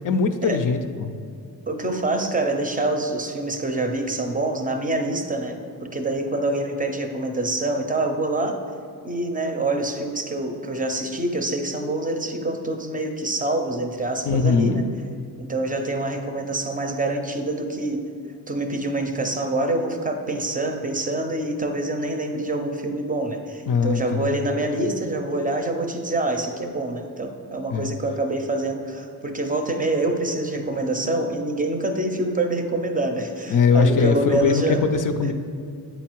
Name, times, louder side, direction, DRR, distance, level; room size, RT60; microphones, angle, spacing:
voice 1, 0.0-1.1 14.2-14.8 23.7-24.3 27.7-27.9 33.5-35.3, left 5 dB, 55° left, 8 dB, 0.5 m, -21 dB
voice 2, 1.7-8.6 9.0-14.8 15.4-18.0 18.5-34.8, right 2 dB, 20° right, 4 dB, 0.6 m, -26 dB
8.1 x 4.1 x 4.5 m, 2.5 s
cardioid pair, 130°, 38 cm